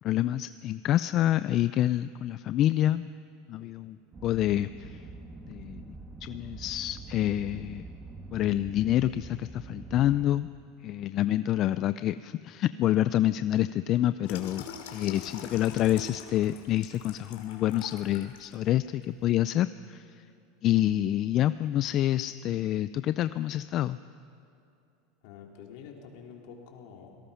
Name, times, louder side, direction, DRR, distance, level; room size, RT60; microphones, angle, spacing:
voice 1, 0.0-3.1 3.5-4.0 4.2-5.0 5.5-5.9 6.2-7.8 8.3-10.5 10.8-20.2 20.6-24.0, left 13 dB, 45° left, 14 dB, 0.4 m, -27 dB
sound 1, 4.1-10.3, right 3 dB, 20° right, 1.6 m, -44 dB
Water tap faucet / Sink (filling or washing), 14.3-18.6 19.0-19.2, left 7 dB, 80° left, 2.6 m, -44 dB
voice 2, 15.0-15.5 25.2-27.2, left 7 dB, 65° left, 1 dB, 3.5 m, -48 dB
26.5 x 18.0 x 5.7 m, 2.5 s
supercardioid pair, 130°, 0 cm